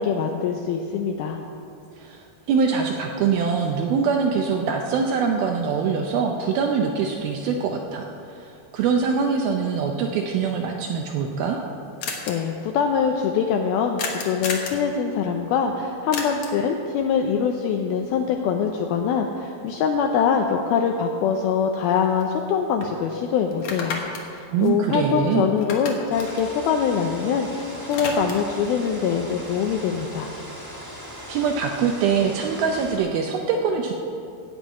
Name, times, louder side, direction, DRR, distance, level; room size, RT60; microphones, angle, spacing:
voice 1, 0.0-1.4 12.3-30.3, left 6 dB, 80° left, 3 dB, 2.2 m, -23 dB
voice 2, 2.0-11.6 24.5-25.5 31.3-33.9, right 6 dB, 80° right, 2 dB, 2.2 m, -23 dB
sound 1, 12.0-12.3 14.0-14.8 16.1-16.7 20.9-21.0 21.3-22.5 22.8-22.9 23.5-25.3 25.6-27.4 27.7-28.6, left 4 dB, 65° left, 1.9 m, -33 dB
sound 2, 26.1-33.0, equal, 10° right, 1.4 m, -39 dB
16.0 x 5.4 x 8.7 m, 2.6 s
omnidirectional pair, 5.1 m